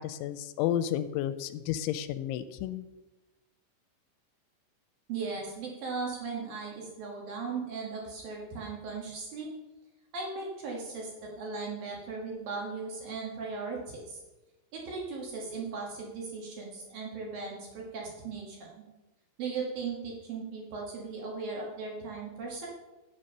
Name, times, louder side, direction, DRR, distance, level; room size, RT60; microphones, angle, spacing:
voice 1, 0.0-2.8, left 11 dB, 85° left, 12 dB, 2.9 m, -32 dB
voice 2, 5.1-9.5 10.1-14.2 14.7-18.8 19.4-22.7, right 4 dB, 60° right, -2 dB, 2.8 m, -37 dB
8.8 x 7.5 x 5.4 m, 1.0 s
omnidirectional pair, 5.4 m